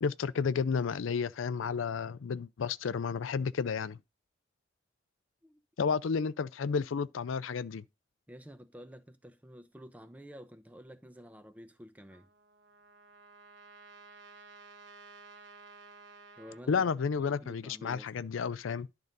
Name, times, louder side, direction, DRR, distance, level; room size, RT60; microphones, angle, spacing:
voice 1, 0.0-4.0 5.8-7.8 16.7-18.9, left 5 dB, 85° left, 0.4 m, -31 dB
voice 2, 8.3-12.3 16.4-16.9 17.2-18.1, equal, 10° right, 0.7 m, -50 dB
Trumpet, 12.1-16.6, right 4 dB, 70° right, 1.1 m, -54 dB
11.0 x 3.9 x 5.3 m
head